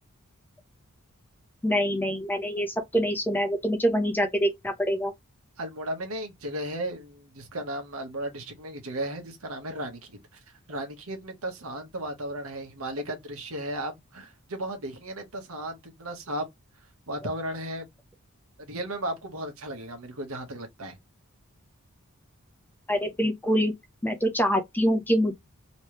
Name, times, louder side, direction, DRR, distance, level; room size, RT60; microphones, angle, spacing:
voice 1, 1.6-5.1 22.9-23.7 24.0-25.3, equal, 10° left, 0.8 m, -25 dB
voice 2, 5.6-10.2 10.7-16.5 17.1-17.9 18.6-21.0, right 1 dB, 70° right, 1.2 m, -35 dB
3.1 x 3.1 x 3.1 m
head